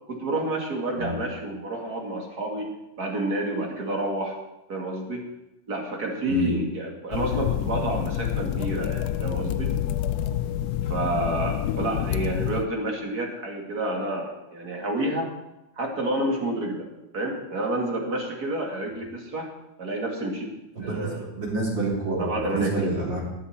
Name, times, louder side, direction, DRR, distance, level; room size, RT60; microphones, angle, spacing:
voice 1, 0.1-4.4 4.7-5.2 5.7-9.7 10.8-15.3 15.8-16.9 17.1-19.5 19.8-21.2 22.2-22.9, right 1 dB, 50° right, 0 dB, 2.6 m, -29 dB
typing on laptop keys and hitting enter, 7.1-12.7, left 11 dB, 75° left, 0.9 m, -28 dB
voice 2, 20.8-23.2, right 2 dB, 70° right, -4 dB, 4.0 m, -28 dB
20.0 x 6.9 x 4.3 m, 0.94 s
omnidirectional pair, 2.1 m